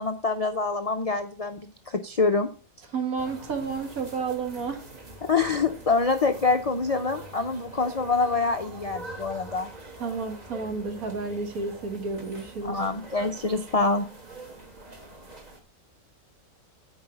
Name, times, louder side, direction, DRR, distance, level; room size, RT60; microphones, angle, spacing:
voice 1, 0.0-2.5 5.2-9.7 12.6-14.1, left 4 dB, 65° left, 6 dB, 0.3 m, -26 dB
voice 2, 2.9-4.8 10.0-12.8, right 4 dB, 80° right, 6 dB, 1.8 m, -31 dB
sound 1, 3.2-15.6, right 2 dB, 30° right, 1.5 m, -44 dB
9.5 x 4.7 x 5.8 m, 0.38 s
omnidirectional pair, 1.5 m